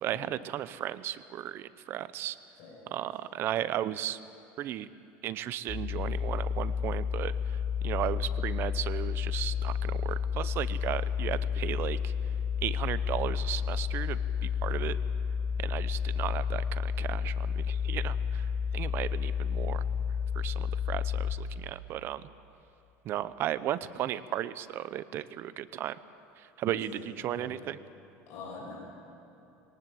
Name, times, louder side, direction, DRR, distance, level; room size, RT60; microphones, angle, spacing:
voice 1, 0.0-2.4 2.9-4.2 4.6-4.9 5.2-7.6 7.8-12.1 12.6-15.0 15.6-19.8 20.3-22.3 23.0-26.0 26.4-27.8, right 12 dB, 45° right, 15 dB, 0.7 m, -35 dB
sound 1, 5.7-21.4, left 7 dB, 30° left, 3.7 m, -31 dB
voice 2, 26.6-27.6 28.3-28.8, left 4 dB, 55° left, -4 dB, 5.8 m, -45 dB
22.0 x 19.0 x 7.8 m, 2.9 s
cardioid pair, 145°, 6 cm